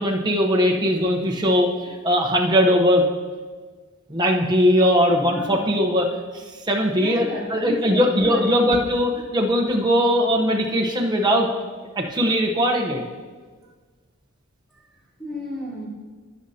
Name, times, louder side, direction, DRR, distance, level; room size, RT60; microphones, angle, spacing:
voice 1, 0.0-3.1 4.1-6.1 6.3-11.5 12.0-13.0, equal, 20° right, 0 dB, 0.9 m, -20 dB
voice 2, 5.3-5.7 6.9-8.4 15.2-15.9, left 1 dB, 5° left, -10 dB, 3.1 m, -33 dB
17.5 x 6.5 x 2.8 m, 1.5 s
head